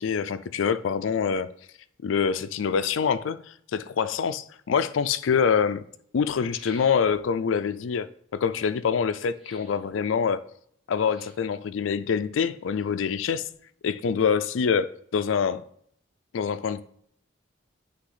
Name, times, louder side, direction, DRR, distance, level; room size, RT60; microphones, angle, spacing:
voice 1, 0.0-1.5 2.0-3.4 3.7-5.8 6.1-8.1 8.3-10.4 10.9-13.4 13.8-15.6 16.3-16.8, left 6 dB, 80° left, 0.4 m, -25 dB
sound 1, 6.2-7.4 9.3-9.8 11.0-11.5 12.4-13.2 13.5-13.6, equal, 5° right, 2.4 m, -51 dB
9.8 x 3.4 x 3.9 m
head